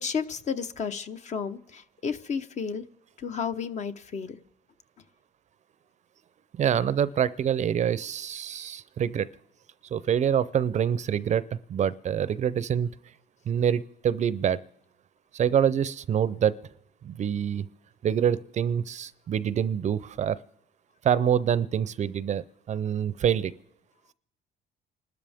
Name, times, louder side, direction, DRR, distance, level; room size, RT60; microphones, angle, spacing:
voice 1, 0.0-2.8 3.2-4.4, left 6 dB, 45° left, 10 dB, 0.9 m, -32 dB
voice 2, 6.6-9.3 9.9-12.9 13.5-14.6 15.3-16.6 17.0-17.7 18.0-20.4 21.0-23.5, right 8 dB, 45° right, 18 dB, 0.5 m, -26 dB
28.0 x 12.5 x 3.5 m, 0.85 s
cardioid pair, 110°, 17 cm